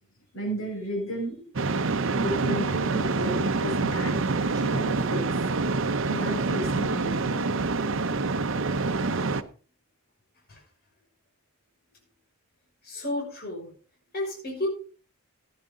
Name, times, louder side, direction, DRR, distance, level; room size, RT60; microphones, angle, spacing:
voice 1, 0.3-1.5 2.0-4.2 4.5-5.2 6.1-7.4, right 1 dB, 85° left, -1 dB, 6.3 m, -33 dB
sound 1, 1.6-9.4, right 3 dB, 65° right, 0.8 m, -26 dB
voice 2, 12.8-13.7 14.1-14.7, left 1 dB, 50° left, -2 dB, 6.2 m, -31 dB
15.0 x 10.5 x 3.8 m, 0.38 s
head